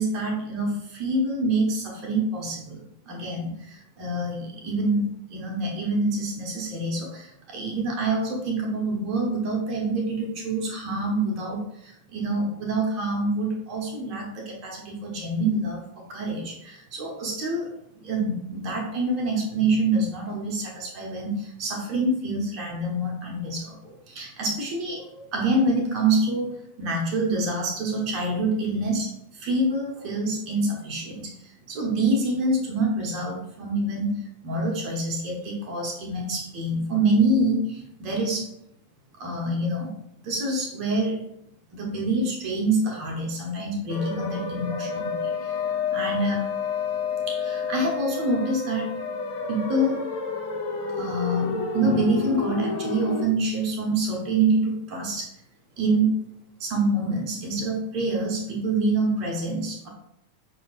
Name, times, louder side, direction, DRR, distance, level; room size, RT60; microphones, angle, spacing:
voice 1, 0.0-26.5 26.8-38.5 39.2-39.9 40.2-41.2 41.7-46.5 47.3-49.0 49.5-50.0 50.9-55.3 55.8-56.1 56.6-59.9, right 2 dB, 40° right, -1 dB, 1.0 m, -26 dB
sound 1, 43.9-53.2, left 5 dB, 55° left, 1.3 m, -30 dB
5.4 x 2.7 x 3.1 m, 0.77 s
figure-of-eight pair, 90°, 0 cm